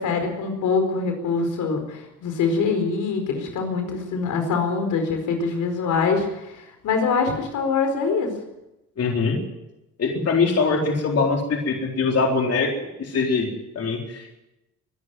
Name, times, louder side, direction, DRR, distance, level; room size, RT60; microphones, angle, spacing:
voice 1, 0.0-8.3, left 4 dB, 80° left, 5 dB, 4.6 m, -24 dB
voice 2, 9.0-9.4 10.0-13.5 13.7-14.4, left 4 dB, 55° left, 1 dB, 4.0 m, -23 dB
23.5 x 11.5 x 9.5 m, 0.94 s
cardioid pair, 90°, 30 cm